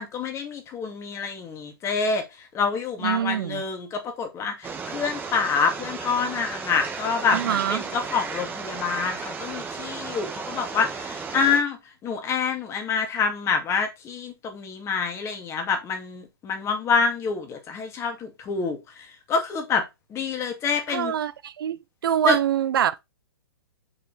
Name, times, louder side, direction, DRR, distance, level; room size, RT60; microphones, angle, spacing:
voice 1, 0.0-2.2 2.5-19.8 20.1-21.1 22.3-22.4, left 5 dB, 20° left, 2.4 m, -27 dB
voice 2, 3.0-3.6 7.3-7.8 20.9-23.0, right 10 dB, 60° right, 0.6 m, -25 dB
sound 1, 4.6-11.6, right 5 dB, 15° right, 1.5 m, -34 dB
6.6 x 5.7 x 4.3 m
hypercardioid pair, 125°, 13 cm